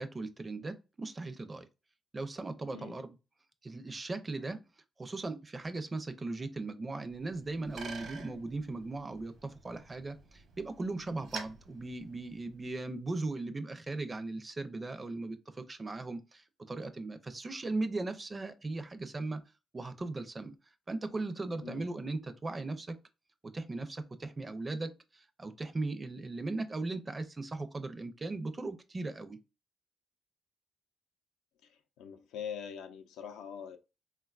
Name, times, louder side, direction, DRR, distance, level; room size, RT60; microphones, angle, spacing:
voice 1, 0.0-1.7 2.1-3.2 3.6-4.6 5.0-19.4 19.7-20.5 20.9-23.0 23.4-29.4, right 2 dB, 25° right, 0.5 m, -38 dB
voice 2, 2.7-3.0 21.6-21.8 32.0-33.8, left 8 dB, 90° left, 0.4 m, -43 dB
Bicycle, 7.1-12.8, right 4 dB, 65° right, 0.8 m, -48 dB
3.7 x 2.2 x 2.3 m
cardioid pair, 90°, 0 cm